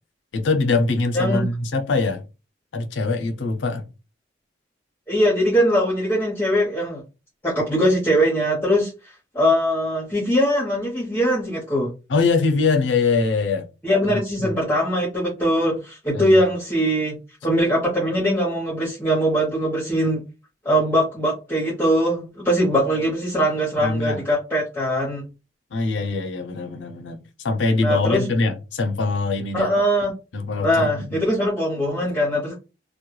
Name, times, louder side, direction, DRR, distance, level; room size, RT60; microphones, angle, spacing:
voice 1, 0.3-2.2 2.7-3.9 12.1-13.7 14.0-14.5 16.1-16.5 23.8-24.2 25.7-29.7 30.3-31.2, left 3 dB, 90° left, 0.5 m, -23 dB
voice 2, 5.1-7.0 7.4-8.9 9.3-11.9 13.8-17.2 17.4-20.2 20.6-25.3 27.8-28.3 29.5-30.1 30.6-32.5, equal, 10° left, 0.7 m, -21 dB
2.2 x 2.1 x 3.0 m
head